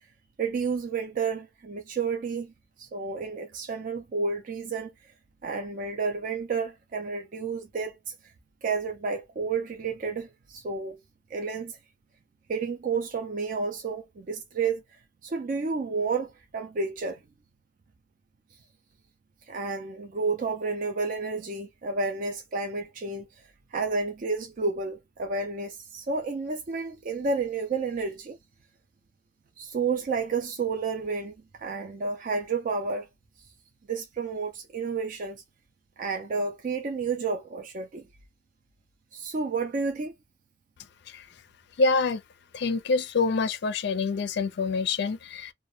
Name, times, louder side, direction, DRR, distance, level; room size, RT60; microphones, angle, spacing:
voice 1, 0.4-2.5 2.8-4.9 5.4-8.1 8.6-11.0 11.3-11.8 12.5-14.8 15.2-17.2 19.5-23.4 23.7-28.4 29.6-33.1 33.9-35.4 36.0-38.1 39.1-40.1, right 4 dB, 45° right, 0.4 m, -31 dB
voice 2, 41.8-42.2 42.5-45.5, left 4 dB, 60° left, 0.4 m, -26 dB
2.1 x 2.1 x 3.0 m
head